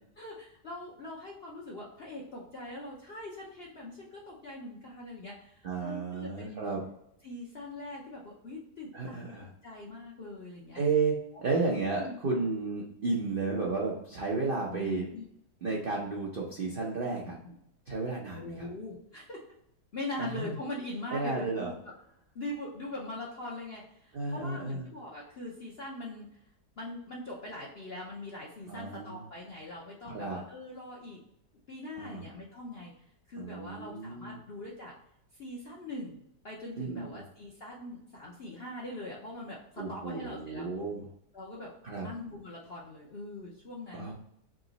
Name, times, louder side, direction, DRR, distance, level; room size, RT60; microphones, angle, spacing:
voice 1, 0.2-6.6 7.2-9.4 9.6-10.8 11.9-12.5 14.7-15.2 17.3-17.5 18.3-19.4 19.9-21.8 22.3-26.4 26.8-31.2 31.7-34.9 35.4-36.2 36.4-40.7 41.3-41.7 42.0-44.1, left 2 dB, 55° left, -3 dB, 0.6 m, -42 dB
voice 2, 5.6-6.8 8.9-9.5 10.7-15.1 15.6-17.3 17.9-18.7 20.2-20.6 21.1-21.7 24.1-24.9 28.7-29.2 30.0-30.4 32.0-32.3 33.4-34.4 36.8-37.2 39.8-41.0 41.8-42.1 43.9-44.1, right 4 dB, 65° right, -2 dB, 0.5 m, -33 dB
3.7 x 2.9 x 3.9 m, 0.76 s
omnidirectional pair, 1.9 m